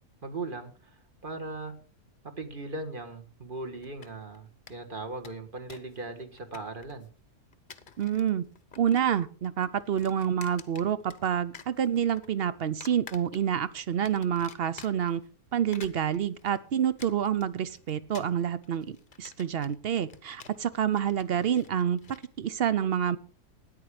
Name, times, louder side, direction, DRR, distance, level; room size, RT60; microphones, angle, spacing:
voice 1, 0.2-0.9 1.2-1.7 2.4-7.1, right 2 dB, 35° right, 5 dB, 1.7 m, -38 dB
sound 1, 3.8-4.4 4.7-4.8 5.0-6.0 6.2-7.1 7.5-8.3 8.6-9.2 9.4-11.3 11.5-12.3 12.8-13.7 14.0-15.2 15.6-22.3, left 6 dB, 40° left, 0.9 m, -49 dB
voice 2, 8.0-8.4 8.8-15.2 15.5-22.0 22.4-23.2, right 9 dB, 55° right, 16 dB, 0.7 m, -28 dB
13.5 x 10.0 x 5.0 m, 0.40 s
omnidirectional pair, 1.6 m